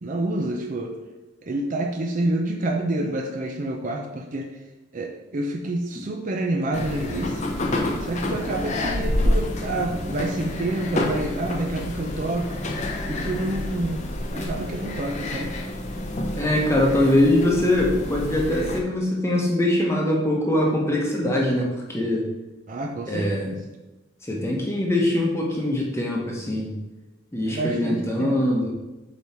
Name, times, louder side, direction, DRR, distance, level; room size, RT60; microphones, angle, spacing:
voice 1, 0.0-1.0 1.4-4.5 4.9-7.4 8.0-12.6 13.1-14.1 14.3-15.5 22.7-23.6 27.5-28.4, right 1 dB, 40° right, 2 dB, 0.5 m, -28 dB
sound 1, 6.7-18.8, left 1 dB, 35° left, 0.7 m, -28 dB
voice 2, 16.4-22.3 23.1-23.6 24.2-26.7 27.3-28.7, left 1 dB, 15° left, -2 dB, 1.0 m, -22 dB
7.0 x 3.1 x 4.3 m, 1.1 s
head